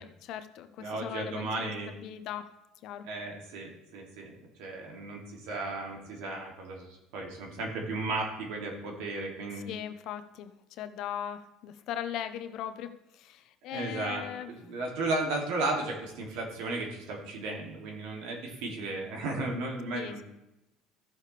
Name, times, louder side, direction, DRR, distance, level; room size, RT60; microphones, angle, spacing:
voice 1, 0.0-2.5 2.8-3.1 9.5-14.5 19.9-20.2, left 10 dB, 60° left, 10 dB, 0.7 m, -39 dB
voice 2, 0.8-1.9 3.0-9.7 13.7-14.2 14.5-20.2, right 2 dB, 80° right, 0 dB, 2.5 m, -35 dB
14.5 x 6.6 x 3.3 m, 0.92 s
cardioid pair, 120°, 0 cm